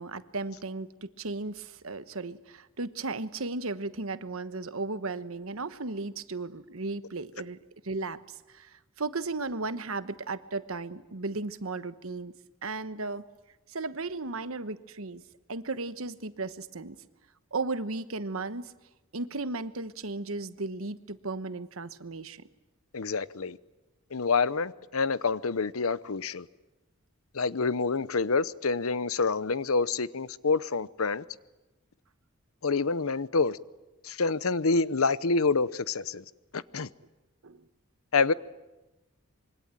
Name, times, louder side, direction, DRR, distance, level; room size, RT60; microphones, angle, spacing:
voice 1, 0.0-7.6 7.8-8.2 8.5-12.3 12.6-13.2 13.7-15.2 15.5-17.0 17.5-18.7 19.1-22.5 37.4-37.6, right 3 dB, 75° right, 1.2 m, -35 dB
voice 2, 22.9-23.6 24.1-26.5 27.3-31.2 32.6-33.6 34.0-36.2 36.5-36.9 38.1-38.3, left 4 dB, 80° left, 0.9 m, -27 dB
26.0 x 23.5 x 9.1 m
head